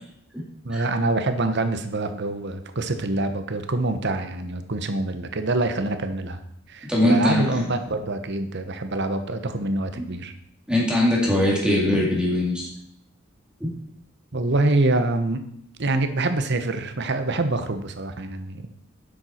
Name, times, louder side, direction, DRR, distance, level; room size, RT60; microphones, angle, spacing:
voice 1, 0.6-6.4 6.7-10.3 14.3-15.4 15.8-18.7, right 2 dB, 60° right, 8 dB, 1.1 m, -25 dB
voice 2, 6.8-7.5 10.0-10.1 10.7-12.7 13.6-13.7, left 1 dB, 5° right, -3 dB, 2.2 m, -21 dB
10.5 x 7.7 x 4.4 m, 0.74 s
head